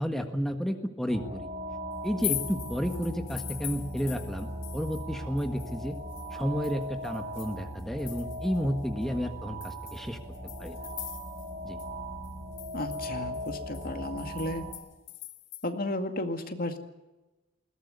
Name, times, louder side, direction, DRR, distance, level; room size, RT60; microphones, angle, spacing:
voice 1, 0.0-1.5 2.0-6.0 6.3-10.2 10.6-10.8 11.6-11.8, equal, ahead, 5 dB, 1.6 m, -31 dB
sound 1, 1.1-14.7, equal, 50° right, 4.9 m, -39 dB
sound 2, 2.0-5.1 5.4-8.6 9.0-9.1 9.6-11.5 11.8-11.9 12.2-15.7, left 15 dB, 90° left, 1.7 m, -41 dB
voice 2, 12.7-14.7 15.6-16.8, left 1 dB, 50° left, 6 dB, 2.2 m, -33 dB
21.0 x 18.0 x 9.8 m, 1.1 s
head